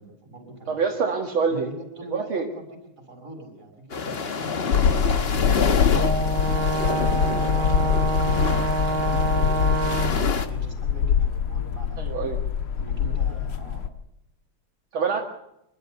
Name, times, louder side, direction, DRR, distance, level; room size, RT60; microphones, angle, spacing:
voice 1, 0.0-0.8 1.5-2.7 3.0-6.0 6.6-12.0 12.8-13.8, right 2 dB, 35° right, 3 dB, 6.5 m, -42 dB
voice 2, 0.7-1.7 2.1-2.5 12.0-12.4 14.9-15.2, right 5 dB, 70° right, 1 dB, 2.7 m, -25 dB
sound 1, 3.9-10.5, left 5 dB, 35° left, 1.1 m, -28 dB
sound 2, 4.7-13.9, left 7 dB, 80° left, 2.1 m, -24 dB
Brass instrument, 5.9-10.3, right 2 dB, 50° right, 3.7 m, -27 dB
27.0 x 13.0 x 8.1 m, 0.83 s
omnidirectional pair, 2.4 m